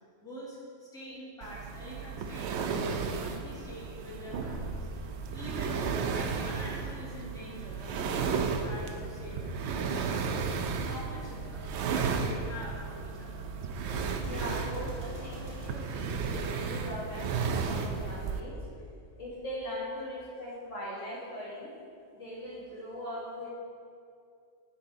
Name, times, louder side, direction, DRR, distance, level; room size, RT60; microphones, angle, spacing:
voice 1, 0.2-4.9 5.3-10.5 10.8-13.4, equal, 5° left, -7 dB, 1.6 m, -45 dB
Chair sliding, 1.4-18.4, right 5 dB, 70° right, 0.8 m, -34 dB
Gunshot gunfire, 13.8-16.9, right 1 dB, 85° right, 2.3 m, -47 dB
voice 2, 14.2-18.6 19.2-21.7 22.1-23.5, equal, 75° left, -6 dB, 2.1 m, -40 dB
8.7 x 4.2 x 5.0 m, 2.4 s
omnidirectional pair, 1.2 m